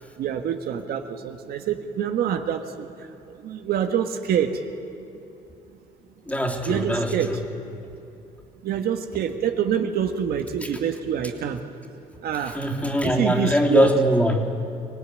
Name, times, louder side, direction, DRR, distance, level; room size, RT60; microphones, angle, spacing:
voice 1, 0.2-2.9 3.3-4.6 6.6-7.3 8.6-11.6 12.2-12.6 13.0-13.9, right 9 dB, 65° right, 6 dB, 1.6 m, -26 dB
voice 2, 6.3-7.4 12.4-14.5, equal, 10° left, 1 dB, 3.2 m, -22 dB
25.5 x 18.5 x 9.8 m, 2.8 s
cardioid pair, 110°, 17 cm